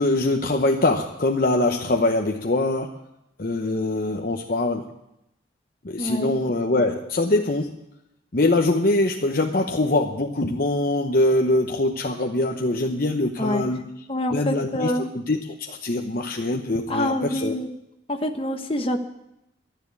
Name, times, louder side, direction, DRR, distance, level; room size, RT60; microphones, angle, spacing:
voice 1, 0.0-2.9 3.4-4.8 5.8-7.7 8.3-13.9 14.3-17.5, left 2 dB, 50° left, 2 dB, 0.9 m, -23 dB
voice 2, 6.0-6.3 13.4-13.6 14.1-15.1 16.9-17.7 18.1-19.0, left 1 dB, 30° left, 5 dB, 1.1 m, -26 dB
12.0 x 10.5 x 9.6 m, 0.86 s
head